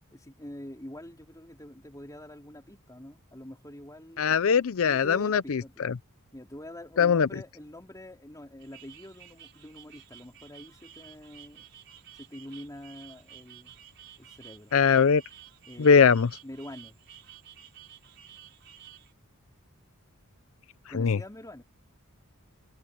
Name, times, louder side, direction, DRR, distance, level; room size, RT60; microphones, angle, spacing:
voice 1, 0.1-4.4 4.9-5.9 6.3-11.6 12.2-13.8 14.2-14.7 15.7-15.9 16.4-17.0 20.9-21.6, left 1 dB, 15° left, 3.4 m, -45 dB
voice 2, 4.2-5.9 7.0-7.3 14.7-15.2 15.8-16.3 20.9-21.2, left 6 dB, 65° left, 0.5 m, -21 dB
sound 1, 8.6-19.1, right 11 dB, 55° right, 4.6 m, -52 dB
head